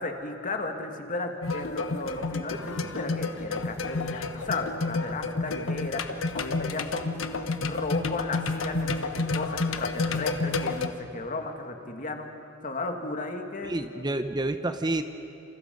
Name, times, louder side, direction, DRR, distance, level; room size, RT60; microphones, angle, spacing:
voice 1, 0.0-7.2 7.6-13.7, left 2 dB, 40° left, 4 dB, 2.2 m, -35 dB
sound 1, 1.4-10.9, left 3 dB, 75° left, 1.2 m, -30 dB
voice 2, 13.6-15.0, right 2 dB, 20° right, 8 dB, 0.8 m, -29 dB
28.0 x 28.0 x 5.4 m, 2.8 s
head